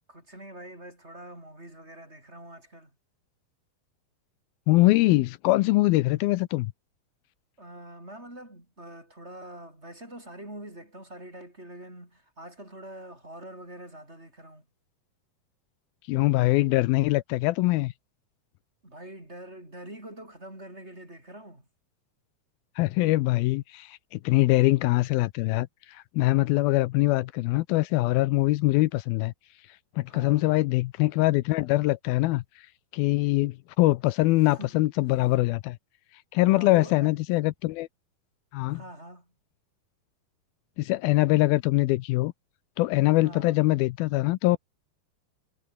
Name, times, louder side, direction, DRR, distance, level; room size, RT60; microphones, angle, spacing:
voice 1, 0.1-2.9 7.6-14.7 18.8-21.7 30.1-30.5 34.4-34.7 36.4-37.1 38.7-39.3 43.2-43.6, right 1 dB, 15° right, 7.7 m, -45 dB
voice 2, 4.7-6.7 16.1-17.9 22.8-29.3 30.0-32.7 32.9-35.8 36.3-37.9 38.5-38.8 40.8-42.3 42.8-44.6, left 19 dB, 85° left, 2.5 m, -23 dB
omnidirectional pair, 4.4 m